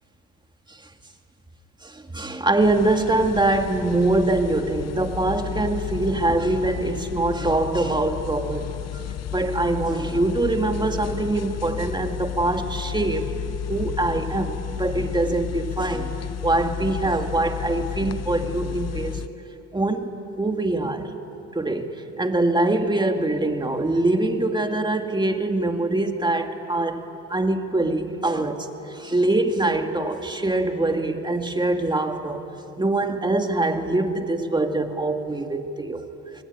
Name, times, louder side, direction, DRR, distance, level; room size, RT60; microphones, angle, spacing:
voice 1, 1.8-9.0 9.3-13.3 13.7-16.1 16.4-19.2 19.7-21.1 21.5-27.0 27.3-32.4 32.8-36.1, right 2 dB, 15° right, 5 dB, 2.2 m, -24 dB
sound 1, 2.6-19.3, left 9 dB, 55° left, 0.8 m, -32 dB
25.5 x 21.0 x 9.7 m, 2.9 s
cardioid pair, 90°, 30 cm